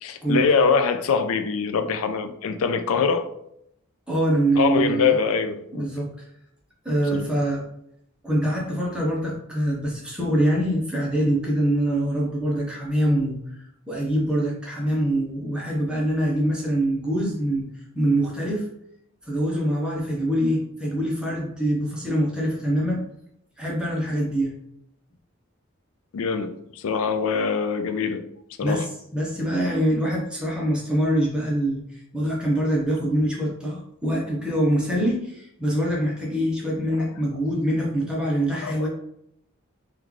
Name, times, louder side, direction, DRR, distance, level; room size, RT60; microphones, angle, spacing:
voice 1, 0.0-3.3 4.6-5.9 7.1-7.3 26.1-28.2 28.6-28.8 37.0-37.1 38.6-38.9, left 5 dB, 70° left, 9 dB, 0.4 m, -23 dB
voice 2, 4.1-5.1 5.7-6.1 6.8-7.6 8.2-18.7 19.3-23.0 23.6-24.5 28.6-31.8 32.1-38.9, right 1 dB, 5° right, -4 dB, 0.6 m, -24 dB
3.0 x 2.3 x 3.6 m, 0.75 s
head